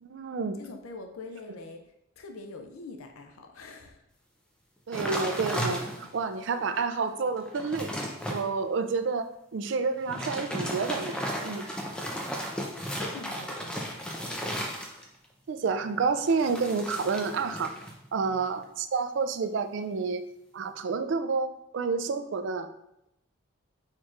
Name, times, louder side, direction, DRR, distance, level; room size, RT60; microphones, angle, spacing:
voice 1, 0.0-0.6 4.9-7.9 8.3-11.7 15.5-17.7 18.1-20.2 20.5-22.7, right 4 dB, 60° right, 9 dB, 0.3 m, -29 dB
voice 2, 0.6-1.8 2.2-4.0 12.9-14.0, left 3 dB, 85° left, 5 dB, 0.5 m, -44 dB
sound 1, 4.9-6.2 6.8-6.9 7.3-8.4 10.0-15.3 16.3-18.0 18.2-18.6, equal, 5° left, 0.5 m, -34 dB
4.5 x 4.4 x 2.4 m, 0.82 s
head